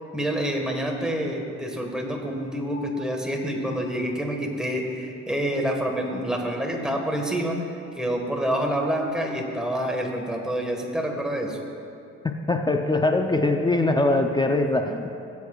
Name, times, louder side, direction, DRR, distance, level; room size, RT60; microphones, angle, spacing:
voice 1, 0.1-7.7 7.9-11.6, equal, ahead, 1 dB, 1.5 m, -27 dB
voice 2, 12.2-15.2, left 2 dB, 15° left, 4 dB, 0.6 m, -22 dB
18.5 x 8.2 x 2.4 m, 2.6 s
cardioid pair, 90°, 30 cm